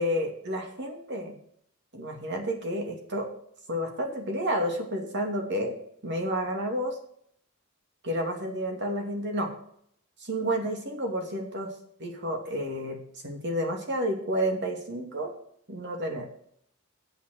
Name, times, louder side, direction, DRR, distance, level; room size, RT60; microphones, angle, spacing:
voice 1, 0.0-1.3 1.9-3.3 3.7-5.7 6.0-7.0 8.0-9.5 10.2-11.7 12.0-13.0 13.2-15.3 15.7-16.3, equal, 60° right, 3 dB, 2.6 m, -30 dB
8.6 x 8.0 x 6.7 m, 0.67 s
head